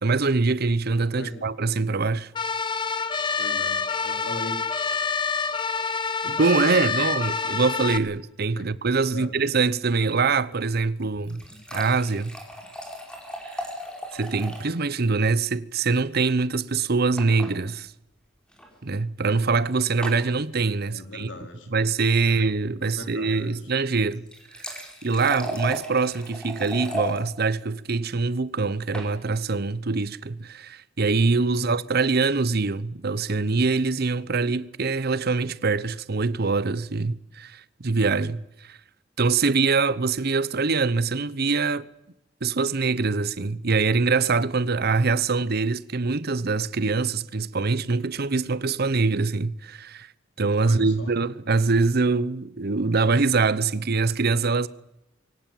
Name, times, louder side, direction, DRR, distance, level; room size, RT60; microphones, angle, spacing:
voice 1, 0.0-2.3 6.2-11.4 11.7-12.4 14.1-17.9 18.8-21.3 21.7-24.3 24.6-24.7 25.0-38.8 39.2-41.9 42.4-50.1 50.4-54.7, right 4 dB, 55° right, 0.8 m, -24 dB
voice 2, 1.1-1.4 3.4-4.6 8.5-8.7 9.1-9.3 20.9-21.8 22.2-22.5 22.8-23.5 31.5-31.8 50.6-51.1, left 1 dB, 70° left, 4.4 m, -38 dB
sound 1, 2.4-8.0, left 5 dB, 25° left, 1.2 m, -27 dB
sound 2, 11.0-14.7 15.0-15.1 15.4-15.5 17.2-17.5 18.5-18.7 20.0-20.3 24.1-27.2 28.6-29.1, equal, 5° left, 5.0 m, -35 dB
23.0 x 17.5 x 9.2 m
head